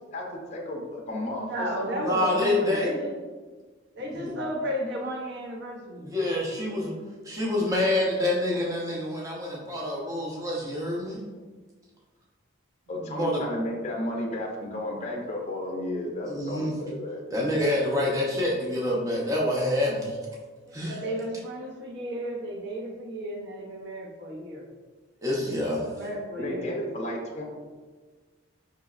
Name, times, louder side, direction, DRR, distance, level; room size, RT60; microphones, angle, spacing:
voice 1, 0.1-2.4 12.9-17.2 26.4-27.4, left 1 dB, 35° left, -1 dB, 0.5 m, -33 dB
voice 2, 1.4-3.1 3.9-6.1 12.9-13.1 20.7-24.6 25.7-26.7, equal, 55° right, -1 dB, 0.6 m, -34 dB
voice 3, 2.0-2.9 4.1-4.3 6.0-7.0 7.2-11.2 13.1-13.4 16.3-16.7 17.3-20.2 20.7-21.0 25.2-25.9, left 1 dB, 15° right, -4 dB, 0.6 m, -27 dB
3.9 x 3.0 x 2.4 m, 1.4 s
head